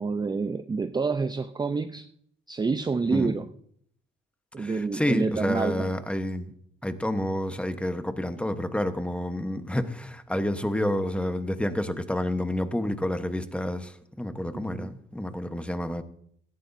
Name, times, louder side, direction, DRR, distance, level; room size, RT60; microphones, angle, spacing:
voice 1, 0.0-2.1 2.5-3.5 4.5-5.9 14.5-14.9, right 4 dB, 20° right, 10 dB, 0.5 m, -28 dB
voice 2, 4.6-6.5 6.8-16.0, left 1 dB, 5° left, 9 dB, 1.1 m, -29 dB
17.5 x 13.0 x 2.7 m, 0.67 s
cardioid pair, 90°, 20 cm